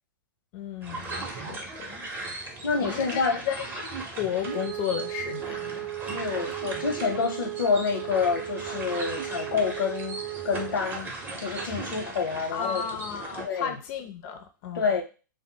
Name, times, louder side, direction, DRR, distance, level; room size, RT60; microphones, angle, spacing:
voice 1, 0.5-2.1 2.5-5.9 12.5-14.9, left 9 dB, 40° left, 0.4 m, -34 dB
sound 1, 0.8-13.5, right 3 dB, 20° right, 0.6 m, -38 dB
voice 2, 2.6-3.5 4.4-4.6 6.1-11.1 11.4-12.8 13.4-13.8 14.7-15.0, left 5 dB, 90° left, 0.7 m, -28 dB
Wind instrument woodwind instrument, 4.4-10.8, right 16 dB, 70° right, 0.4 m, -36 dB
2.0 x 2.0 x 3.7 m
hypercardioid pair, 140°, 11 cm